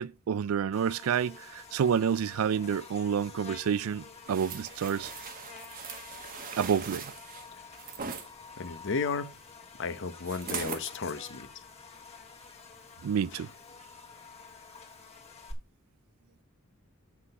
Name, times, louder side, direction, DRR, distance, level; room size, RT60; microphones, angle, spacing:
voice 1, 0.0-5.1 6.5-7.1 13.0-13.5, right 7 dB, 80° right, 0.4 m, -29 dB
Buzz, 0.7-15.5, left 5 dB, 30° left, 1.7 m, -49 dB
sound 1, 4.3-8.3 10.2-10.9 11.4-11.5, right 6 dB, 40° right, 1.1 m, -40 dB
voice 2, 8.6-9.3 9.8-11.5 13.3-13.5, left 4 dB, 60° left, 0.9 m, -34 dB
7.8 x 6.1 x 5.4 m
head